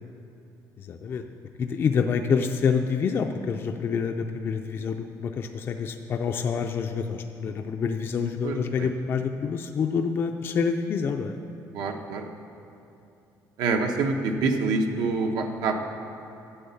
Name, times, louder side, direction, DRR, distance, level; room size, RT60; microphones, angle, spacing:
voice 1, 0.8-1.2 1.6-11.4, left 6 dB, 35° left, 5 dB, 0.4 m, -27 dB
voice 2, 8.4-8.9 11.7-12.3 13.6-15.8, right 3 dB, 75° right, 4 dB, 0.9 m, -26 dB
10.0 x 7.7 x 6.9 m, 2.9 s
cardioid pair, 180°, 7 cm